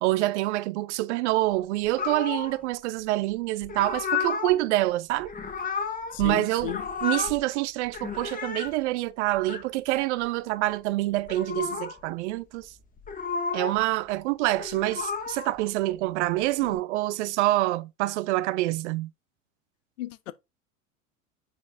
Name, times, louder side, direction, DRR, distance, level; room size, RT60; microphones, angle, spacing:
voice 1, 0.0-5.3 6.2-6.7 7.0-12.7 13.5-19.1, right 17 dB, 60° right, 0.5 m, -26 dB
sound 1, 2.0-2.6 3.6-4.6 5.2-6.3 6.6-7.4 7.9-8.7 9.4-9.6 11.2-12.0 13.0-13.8 14.4-15.5 16.4-16.8, left 5 dB, 20° left, 1.4 m, -32 dB
voice 2, 6.1-6.8 20.0-20.3, left 14 dB, 70° left, 0.7 m, -34 dB
7.1 x 5.0 x 2.6 m
figure-of-eight pair, 80°, 40 cm